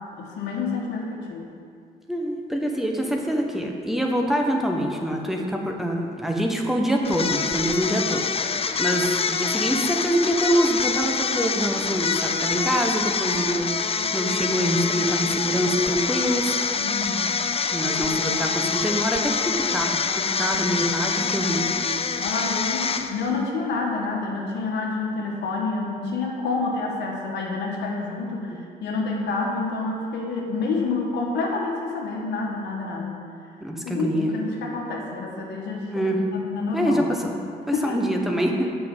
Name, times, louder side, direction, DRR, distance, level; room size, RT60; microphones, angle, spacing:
voice 1, 0.2-1.5 16.7-17.3 22.1-33.2 33.8-37.3 37.7-38.0, left 3 dB, 85° left, -1 dB, 1.4 m, -28 dB
voice 2, 2.1-13.7 14.1-16.5 17.7-21.7 33.6-34.3 35.9-36.2 36.7-37.1 37.8-38.7, equal, ahead, 0 dB, 1.4 m, -25 dB
sound 1, 7.0-23.4, left 5 dB, 35° left, 0.5 m, -26 dB
7.7 x 5.9 x 7.4 m, 2.4 s
cardioid pair, 65°, 18 cm